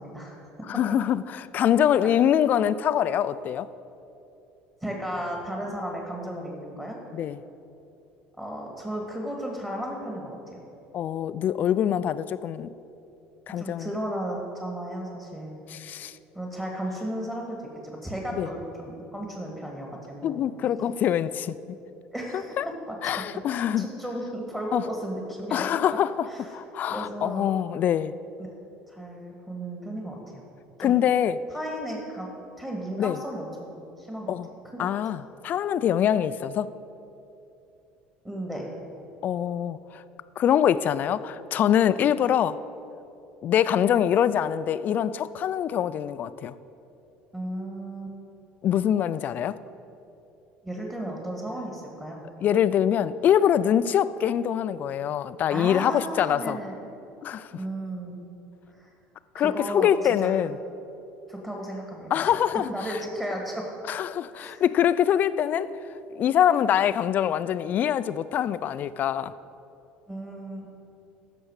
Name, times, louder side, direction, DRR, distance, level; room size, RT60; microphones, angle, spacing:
voice 1, 0.0-0.7 2.0-2.1 4.8-7.0 8.4-10.6 13.6-15.6 16.3-19.9 20.2-20.4 22.1-22.6 22.9-23.1 23.5-25.7 26.3-26.5 26.9-27.5 28.9-30.4 30.8-31.0 31.5-32.3 32.6-33.7 34.0-34.3 34.7-34.9 38.2-38.7 47.3-48.2 50.6-52.2 55.5-56.8 57.5-58.2 58.7-58.9 59.4-59.9 60.2-60.3 61.3-62.3 62.7-63.6 64.3-64.6 70.1-70.7, right 1 dB, 15° right, -1 dB, 2.0 m, -34 dB
voice 2, 0.7-3.7 7.1-7.4 10.9-12.7 13.5-13.9 15.7-16.2 18.4-18.5 20.2-21.6 22.6-22.7 23.0-23.9 24.7-24.8 25.5-26.3 26.5-28.1 30.8-31.4 33.0-33.2 34.3-34.5 34.8-36.7 39.2-40.0 40.4-42.6 43.4-46.5 48.6-49.6 52.4-56.6 57.2-57.5 59.3-60.5 62.1-63.0 63.9-65.7 66.1-69.3, left 10 dB, 50° left, 15 dB, 0.4 m, -24 dB
14.5 x 6.1 x 4.8 m, 2.8 s
supercardioid pair, 95°, 4 cm